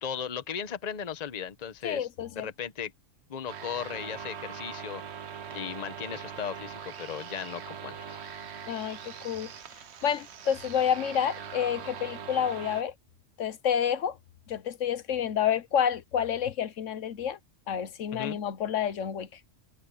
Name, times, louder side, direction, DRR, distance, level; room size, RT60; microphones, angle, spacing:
voice 1, 0.0-2.9 3.3-5.0 5.5-8.2 18.1-18.4, left 8 dB, 35° left, 1.0 m, -37 dB
voice 2, 1.8-2.5 8.7-9.5 10.0-12.9 13.4-14.2 14.5-17.4 17.7-19.3, left 8 dB, 75° left, 1.2 m, -29 dB
sound 1, 3.5-12.8, right 7 dB, 60° right, 1.1 m, -42 dB
omnidirectional pair, 1.3 m